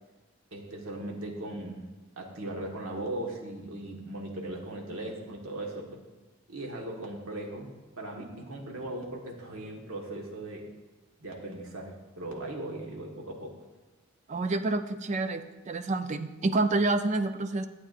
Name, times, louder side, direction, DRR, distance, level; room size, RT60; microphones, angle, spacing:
voice 1, 0.5-6.0 6.5-7.7 8.0-10.7 11.2-13.5, right 1 dB, 65° right, 0 dB, 1.4 m, -38 dB
voice 2, 14.3-17.7, right 2 dB, 30° right, 9 dB, 0.4 m, -28 dB
12.0 x 8.3 x 2.5 m, 1.2 s
head